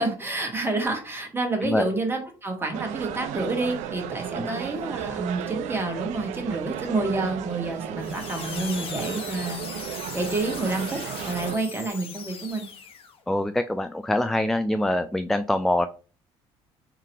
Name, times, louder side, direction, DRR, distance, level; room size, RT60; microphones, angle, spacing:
voice 1, 0.0-11.0 11.3-12.7, right 2 dB, 20° right, 2 dB, 1.6 m, -29 dB
sound 1, 2.7-11.6, right 10 dB, 70° right, 0.5 m, -34 dB
sound 2, 8.0-13.2, left 6 dB, 45° left, 1.1 m, -39 dB
voice 2, 13.3-15.9, left 1 dB, ahead, 10 dB, 0.3 m, -24 dB
3.6 x 3.0 x 4.5 m, 0.36 s
supercardioid pair, 75°, 12 cm